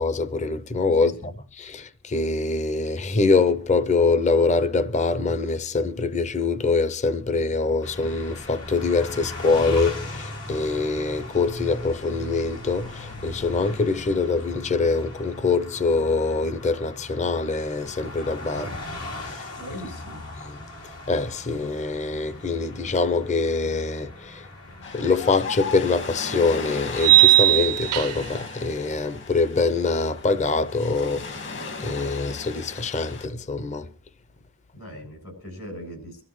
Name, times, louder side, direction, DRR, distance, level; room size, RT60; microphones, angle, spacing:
voice 1, 0.0-1.3 1.6-18.7 19.2-19.5 20.4-20.6 21.1-24.5 24.9-33.9, left 4 dB, 30° left, 0.6 m, -24 dB
sound 1, 7.8-25.1, left 1 dB, 90° left, 2.7 m, -38 dB
voice 2, 19.5-20.2 34.7-36.2, equal, 75° left, 7.4 m, -39 dB
Ocean, 24.8-33.3, left 4 dB, 55° left, 1.7 m, -36 dB
sound 2, 25.3-25.4 27.0-28.4, right 16 dB, 75° right, 0.6 m, -17 dB
24.0 x 13.0 x 3.1 m
head